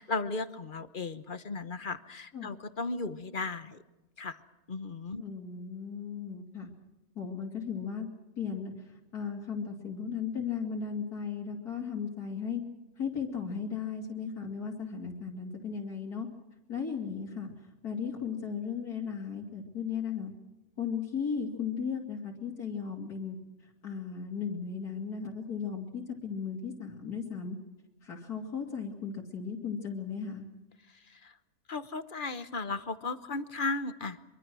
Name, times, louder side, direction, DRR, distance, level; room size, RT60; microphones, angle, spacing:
voice 1, 0.0-3.8 4.2-4.4 4.7-5.2 31.1-31.3 31.7-34.2, left 3 dB, 40° left, 12 dB, 1.1 m, -35 dB
voice 2, 5.2-6.7 7.1-8.1 8.4-8.7 9.1-12.6 13.0-16.3 16.7-17.5 17.8-20.3 20.8-23.4 23.8-27.6 28.0-30.5, left 6 dB, 80° left, -1 dB, 3.2 m, -36 dB
24.5 x 23.5 x 6.2 m, 1.0 s
omnidirectional pair, 1.6 m